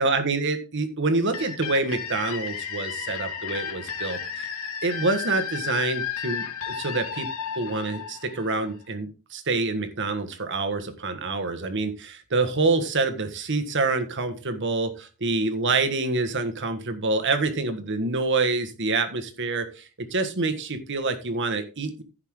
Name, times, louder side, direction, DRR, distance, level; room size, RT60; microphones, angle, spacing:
voice 1, 0.0-4.5 4.8-7.3 7.5-22.0, right 3 dB, 60° right, 8 dB, 1.5 m, -26 dB
sound 1, 1.3-8.9, left 7 dB, 80° left, 2.0 m, -33 dB
15.0 x 5.7 x 3.7 m, 0.33 s
head